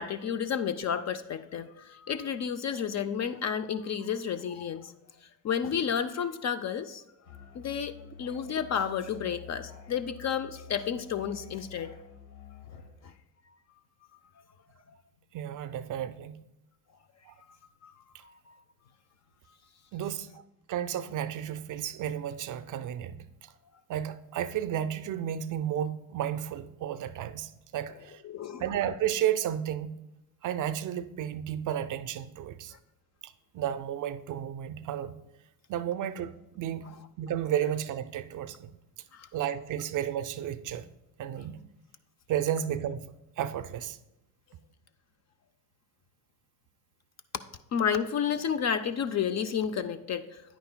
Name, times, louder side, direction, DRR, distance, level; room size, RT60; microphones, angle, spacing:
voice 1, 0.0-4.9 5.4-7.0 7.5-12.0 13.0-13.1 17.8-17.9 18.2-18.6 28.2-28.6 39.1-39.3 47.7-50.4, left 7 dB, 35° left, 0.5 m, -31 dB
Musical instrument, 7.2-13.0, left 8 dB, 70° left, 1.7 m, -49 dB
voice 2, 15.3-16.4 17.3-17.4 19.9-20.4 20.7-23.5 23.9-28.2 28.6-29.9 30.4-32.7 33.2-35.1 35.7-36.9 37.2-38.7 39.3-40.9 41.2-41.6 42.3-44.0, right 10 dB, 40° right, 0.5 m, -33 dB
9.8 x 9.1 x 2.2 m
hypercardioid pair, 75°, 49 cm